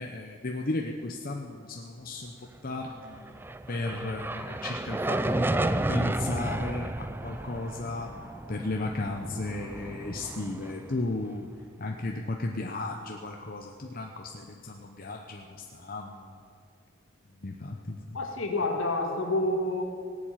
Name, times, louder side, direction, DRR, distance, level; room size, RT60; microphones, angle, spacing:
voice 1, 0.0-3.4 3.7-8.1 8.5-11.5 11.8-16.3 17.4-18.2, left 2 dB, 40° left, 2 dB, 0.8 m, -35 dB
sound 1, 3.1-11.5, right 1 dB, 10° right, 0.3 m, -32 dB
voice 2, 18.1-19.8, left 2 dB, 70° left, 3 dB, 2.1 m, -28 dB
18.0 x 7.5 x 8.9 m, 2.3 s
head